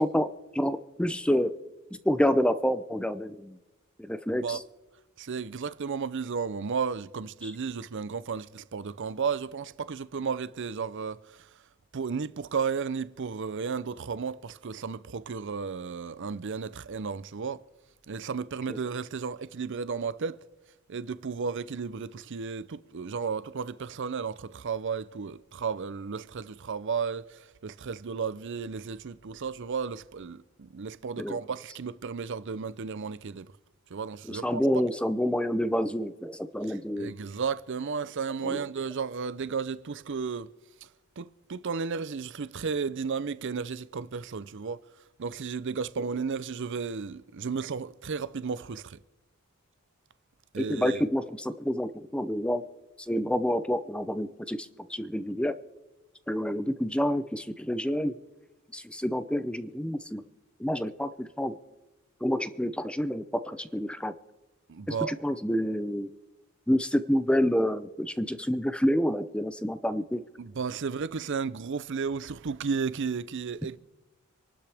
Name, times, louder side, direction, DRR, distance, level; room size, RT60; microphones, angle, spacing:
voice 1, 0.0-1.5 2.0-3.6 4.0-4.6 7.4-7.5 18.7-18.8 31.2-31.4 34.3-37.1 38.4-38.6 50.6-52.6 53.0-55.5 56.3-58.2 58.7-60.2 60.6-61.6 62.2-64.1 64.9-66.1 66.7-70.2, equal, 5° left, 0.6 m, -28 dB
voice 2, 5.2-11.5 11.9-17.6 18.1-20.4 20.9-33.5 33.9-34.6 36.7-40.5 40.8-40.9 41.2-44.8 45.2-49.0 50.5-51.0 64.7-65.2 70.4-73.8, right 5 dB, 55° right, 0.5 m, -33 dB
26.5 x 12.0 x 3.5 m
head